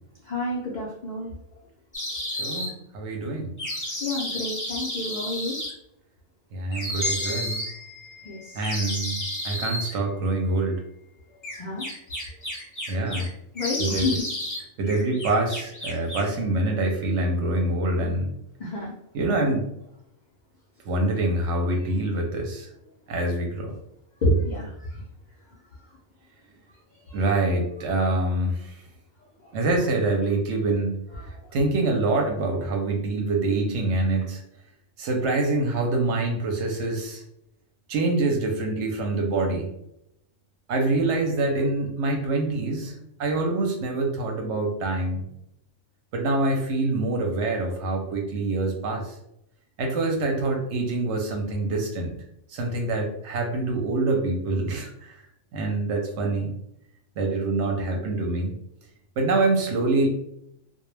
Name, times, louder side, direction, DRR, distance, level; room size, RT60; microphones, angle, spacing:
voice 1, 0.2-1.3 4.0-5.6 8.2-8.7 11.6-11.9 13.5-14.3 18.6-18.9 21.6-21.7 24.2-25.0 27.1-27.2, left 1 dB, 85° left, -3 dB, 0.4 m, -29 dB
sound 1, 1.9-2.7 3.6-5.7 6.7-7.7 8.6-9.9 11.4-13.3 13.6-14.6 14.9-16.3, left 1 dB, 20° left, 0.5 m, -32 dB
voice 2, 2.4-3.6 6.5-7.6 8.5-9.2 9.4-10.8 12.9-13.3 13.8-14.2 14.8-18.3 19.1-19.7 20.9-22.7 23.1-23.7 27.1-28.8 29.5-30.9 31.5-34.4 35.0-37.2 37.9-39.7 40.7-42.9 43.2-45.3 46.1-49.1 49.8-52.1 52.5-55.2 55.5-56.5 57.2-58.5 59.2-60.1, right 2 dB, 65° right, 1 dB, 0.8 m, -25 dB
sound 2, 7.0-11.3, left 2 dB, 35° right, 0.5 m, -37 dB
2.1 x 2.1 x 3.1 m, 0.78 s
omnidirectional pair, 1.4 m